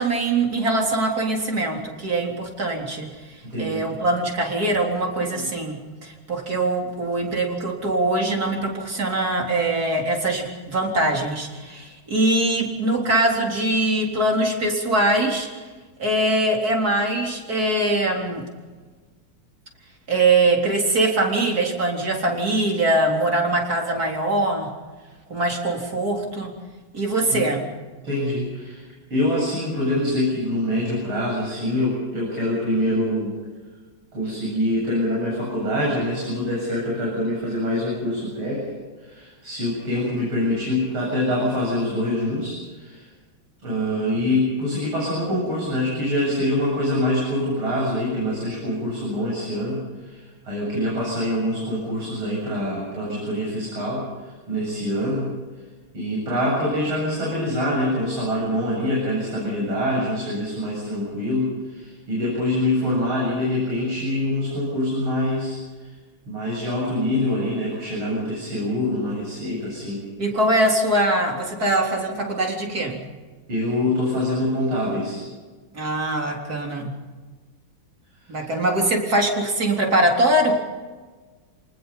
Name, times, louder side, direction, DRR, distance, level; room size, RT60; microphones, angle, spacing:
voice 1, 0.0-3.1 3.6-15.5 16.0-18.5 20.1-24.7 25.3-26.5 26.9-27.7 70.2-73.0 75.7-77.0 78.3-80.6, right 2 dB, 45° right, 0 dB, 4.2 m, -22 dB
voice 2, 3.4-3.9 5.2-5.5 27.3-27.4 28.0-28.8 29.1-33.4 34.1-38.7 39.0-43.1 43.6-55.3 55.9-65.9 66.3-70.0 73.5-75.2 78.4-78.5, left 1 dB, 90° right, -4 dB, 9.0 m, -25 dB
29.0 x 19.5 x 5.6 m, 1.4 s
omnidirectional pair, 2.3 m